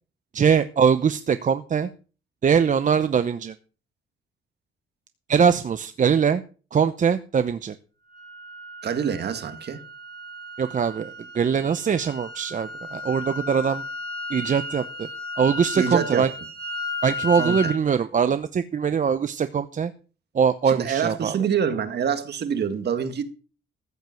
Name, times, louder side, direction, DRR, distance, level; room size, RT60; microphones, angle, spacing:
voice 1, 0.3-1.9 2.4-3.5 5.3-6.4 6.7-7.7 10.6-13.8 14.3-15.1 15.4-16.3 17.0-19.9 20.3-21.4, right 7 dB, 40° right, 0.7 m, -22 dB
sound 1, 8.1-17.8, left 3 dB, 20° left, 3.1 m, -34 dB
voice 2, 8.8-9.8 15.7-16.3 17.4-17.7 20.7-23.2, right 7 dB, 55° right, 1.9 m, -26 dB
14.0 x 5.3 x 7.7 m
cardioid pair, 90°, 20 cm